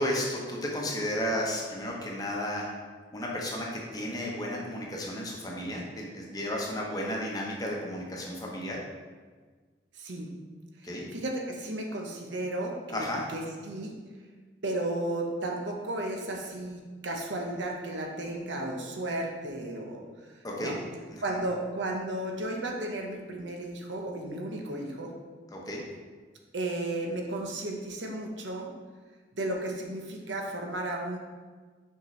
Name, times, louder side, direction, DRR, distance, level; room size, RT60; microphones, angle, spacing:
voice 1, 0.0-2.7 3.1-3.7 3.9-8.8 10.8-11.0 12.9-13.2 20.4-20.8 25.5-25.8, left 1 dB, 20° left, -2 dB, 0.9 m, -33 dB
voice 2, 9.9-10.3 11.1-13.9 14.6-20.0 20.6-20.8 21.2-25.1 26.5-28.7 29.3-31.2, right 1 dB, 80° right, 1 dB, 0.9 m, -34 dB
6.4 x 4.7 x 3.2 m, 1.4 s
head